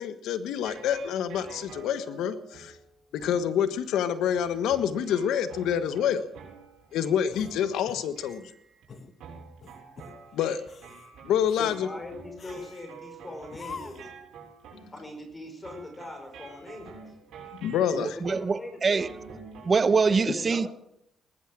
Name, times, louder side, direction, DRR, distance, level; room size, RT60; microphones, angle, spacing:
voice 1, 0.0-2.7 3.1-6.2 6.9-8.4 10.3-10.6 11.2-11.9 17.6-18.1, left 9 dB, 85° left, 1.4 m, -27 dB
sound 1, 0.5-8.9 9.2-19.8, right 5 dB, 80° right, 6.9 m, -48 dB
sound 2, 7.3-8.5 8.9-9.1 9.6-10.2 10.6-11.1 11.5-11.8 12.4-12.9 13.5-14.2, left 5 dB, 50° left, 2.0 m, -45 dB
voice 2, 11.6-14.1 14.9-16.9 18.3-19.1 20.1-20.7, left 2 dB, 20° left, 4.8 m, -40 dB
voice 3, 17.9-19.1 19.6-20.7, right 4 dB, 35° right, 1.0 m, -24 dB
19.0 x 12.0 x 6.2 m
cardioid pair, 90°, 0 cm